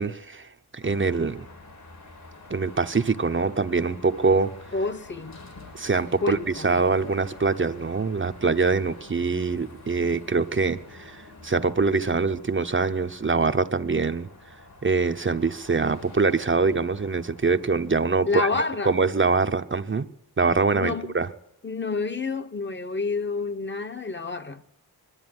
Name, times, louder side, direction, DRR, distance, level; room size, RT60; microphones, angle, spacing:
voice 1, 0.0-1.4 2.5-4.5 5.7-6.4 6.6-14.3 14.8-20.1 20.4-21.3, right 4 dB, 30° right, 0.8 m, -24 dB
Car passing by / Traffic noise roadway noise / Engine, 0.8-17.9, left 2 dB, 70° left, 4.3 m, -47 dB
voice 2, 4.7-5.4 6.2-6.8 18.3-18.9 20.7-21.2 21.6-24.6, left 4 dB, 30° left, 1.1 m, -28 dB
21.0 x 12.5 x 9.6 m
cardioid pair, 70°, 39 cm